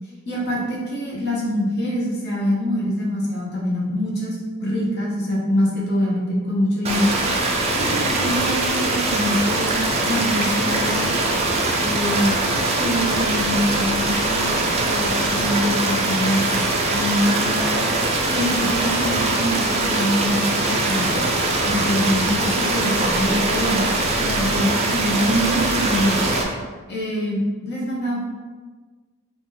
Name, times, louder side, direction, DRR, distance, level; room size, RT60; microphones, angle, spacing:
voice 1, 0.2-7.1 7.8-9.7 10.0-11.2 11.8-12.3 12.8-16.5 16.9-17.8 18.3-21.1 21.6-23.8 24.2-26.5 26.9-28.2, equal, 50° left, -4 dB, 1.0 m, -24 dB
sound 1, 6.8-26.4, right 2 dB, 30° right, 0.4 m, -22 dB
3.6 x 2.5 x 3.8 m, 1.4 s
head